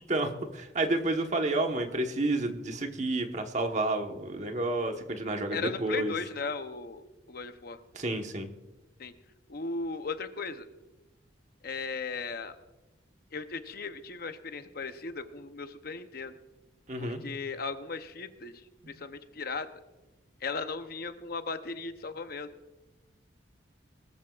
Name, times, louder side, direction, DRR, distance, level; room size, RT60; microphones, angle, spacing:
voice 1, 0.1-6.1 7.9-8.5 16.9-17.2, right 2 dB, 40° right, 4 dB, 1.2 m, -30 dB
voice 2, 5.5-7.8 9.0-9.1 9.5-10.7 11.6-12.6 13.3-16.4 17.0-19.7 20.4-22.5, left 4 dB, 50° left, 9 dB, 0.7 m, -37 dB
19.5 x 14.0 x 2.4 m, 1.1 s
head